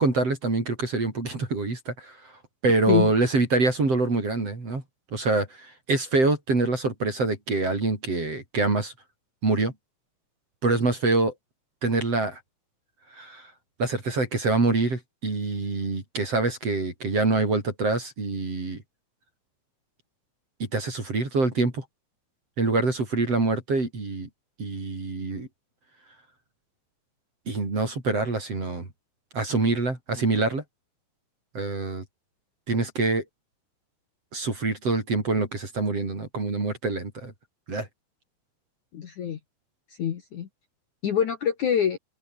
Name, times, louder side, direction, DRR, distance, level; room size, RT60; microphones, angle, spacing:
voice 1, 0.0-2.2 2.6-4.8 5.1-5.5 5.9-8.9 9.4-9.7 10.6-11.3 11.8-12.4 13.2-13.5 13.8-18.8 20.7-21.8 22.6-24.3 24.6-25.5 27.5-28.9 29.3-30.6 31.5-32.0 32.7-33.2 34.3-37.3 37.7-37.9, right 3 dB, 30° right, 5.8 m, -25 dB
voice 2, 38.9-39.4 40.0-40.5 41.0-42.0, left 8 dB, 65° left, 1.9 m, -25 dB
omnidirectional pair, 6.0 m